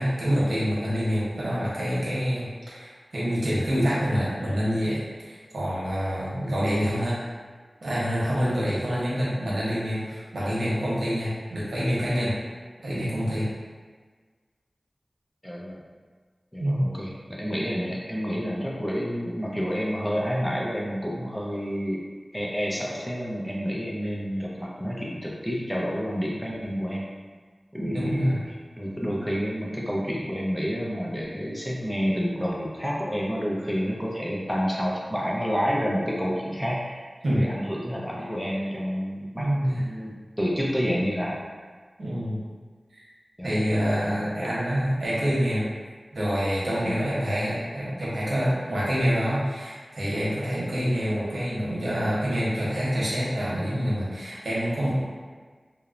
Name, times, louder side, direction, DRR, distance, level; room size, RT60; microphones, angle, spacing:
voice 1, 0.0-7.2 7.8-12.3 12.8-13.5 16.6-16.8 27.8-28.4 37.2-37.5 39.4-39.8 42.0-42.4 42.9-43.0 43.4-45.6 46.1-55.0, equal, 90° right, -8 dB, 0.8 m, -26 dB
voice 2, 15.4-15.9 16.5-22.0 22.3-27.0 27.7-41.4 43.4-43.6 44.4-44.5 46.8-47.0, equal, 10° left, -4 dB, 0.5 m, -29 dB
2.9 x 2.0 x 2.4 m, 1.5 s
wide cardioid pair, 65°, 0 cm